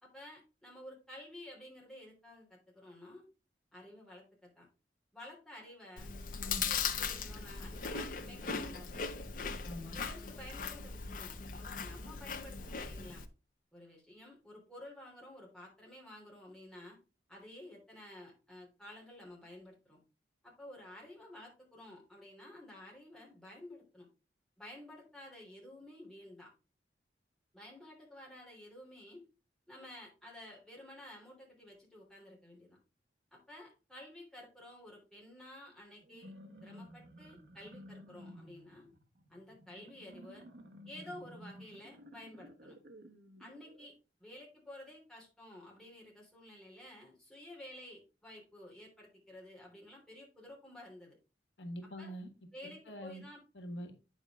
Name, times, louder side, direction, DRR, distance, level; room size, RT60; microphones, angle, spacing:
voice 1, 0.0-3.2 3.7-4.7 5.1-6.1 6.4-9.0 9.8-13.2 13.7-17.0 17.3-20.0 20.4-24.1 24.6-26.5 27.5-29.2 29.7-32.8 33.3-36.3 36.6-38.9 39.3-40.4 40.9-42.8 43.4-43.9 44.2-51.2 52.0-52.1 52.5-53.4, left 1 dB, 5° left, -3 dB, 3.0 m, -52 dB
Chewing mastication, 6.0-13.3, left 5 dB, 50° left, 0.7 m, -39 dB
voice 2, 6.3-6.7 9.6-9.9 51.6-52.3 52.6-53.2 53.5-53.9, equal, 80° left, 5 dB, 1.4 m, -44 dB
sound 1, 36.0-43.9, equal, 65° right, 1.0 m, -54 dB
8.8 x 5.4 x 3.5 m, 0.32 s
head